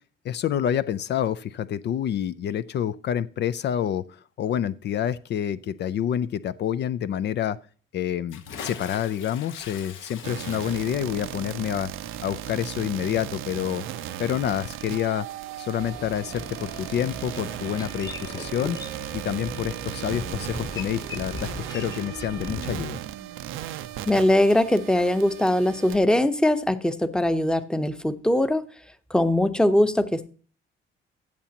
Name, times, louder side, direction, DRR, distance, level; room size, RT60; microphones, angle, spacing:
voice 1, 0.2-7.6 7.9-11.9 12.2-13.8 14.2-15.3 15.6-18.8 19.1-23.0, left 10 dB, 60° left, 15 dB, 0.4 m, -28 dB
Bathtub (filling or washing) / Splash splatter, 8.3-14.9, left 7 dB, 80° left, 1.2 m, -43 dB
sound 1, 10.2-26.0, right 12 dB, 90° right, 0.6 m, -36 dB
Boat Water vehicle, 15.8-22.9, left 2 dB, 20° left, 1.1 m, -39 dB
voice 2, 24.1-28.6 29.1-30.3, left 1 dB, 5° left, 11 dB, 0.8 m, -21 dB
14.5 x 7.2 x 2.8 m, 0.39 s
cardioid pair, 90°, 20 cm